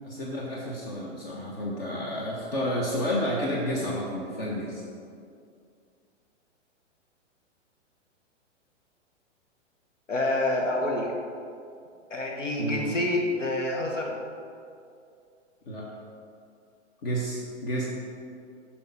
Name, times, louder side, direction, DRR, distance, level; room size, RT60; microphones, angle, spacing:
voice 1, 0.0-4.8 12.6-12.9 15.7-15.9 17.0-17.9, equal, 50° left, -3 dB, 1.5 m, -30 dB
voice 2, 10.1-11.1 12.1-14.2, left 1 dB, 85° left, 0 dB, 1.4 m, -27 dB
10.5 x 6.0 x 4.1 m, 2.4 s
figure-of-eight pair, 110°, 37 cm